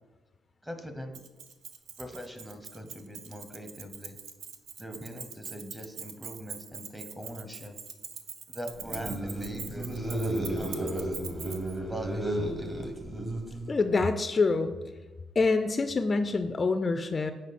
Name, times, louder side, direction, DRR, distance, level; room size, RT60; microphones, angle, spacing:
voice 1, 0.6-1.2 2.0-4.2 4.8-7.8 8.5-11.2 11.9-13.0, equal, 10° right, 6 dB, 0.9 m, -42 dB
Keys jangling, 1.1-11.8, right 7 dB, 75° right, 0.6 m, -43 dB
sound 1, 8.8-13.9, right 1 dB, 25° right, 1.3 m, -33 dB
voice 2, 13.7-14.7 15.4-17.3, left 3 dB, 35° left, 9 dB, 0.4 m, -26 dB
7.2 x 5.0 x 4.2 m, 1.2 s
cardioid pair, 90°, 0 cm